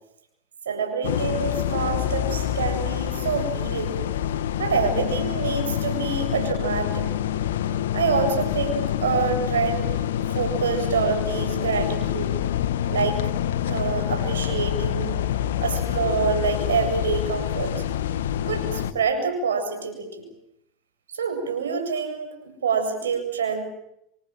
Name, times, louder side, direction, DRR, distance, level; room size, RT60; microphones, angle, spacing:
voice 1, 0.7-4.0 4.6-7.1 7.9-10.0 10.3-12.4 12.9-13.2 13.7-15.2 15.6-17.8 18.5-20.3 21.1-23.6, right 5 dB, 90° right, 5 dB, 7.7 m, -26 dB
sound 1, 1.0-18.9, left 10 dB, 80° left, 1.6 m, -26 dB
28.0 x 24.5 x 7.7 m, 0.78 s
hypercardioid pair, 95°, 0 cm